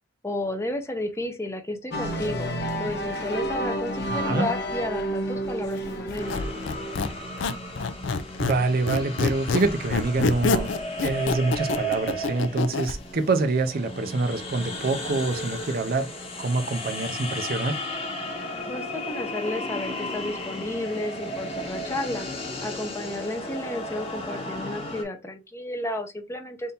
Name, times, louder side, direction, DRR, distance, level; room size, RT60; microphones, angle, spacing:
voice 1, 0.2-2.5 2.8-6.5 18.7-22.3 22.6-26.7, left 1 dB, 15° left, 0.7 m, -32 dB
sound 1, 1.9-7.3, equal, 60° left, 1.0 m, -30 dB
voice 2, 4.1-4.5 8.4-10.7 11.0-16.1 16.4-17.8, right 3 dB, 55° right, 0.6 m, -26 dB
Squeak, 6.1-8.6 8.9-13.0, left 4 dB, 80° left, 0.5 m, -27 dB
sound 2, 6.2-25.0, left 1 dB, 35° left, 1.1 m, -35 dB
3.7 x 2.7 x 4.0 m
head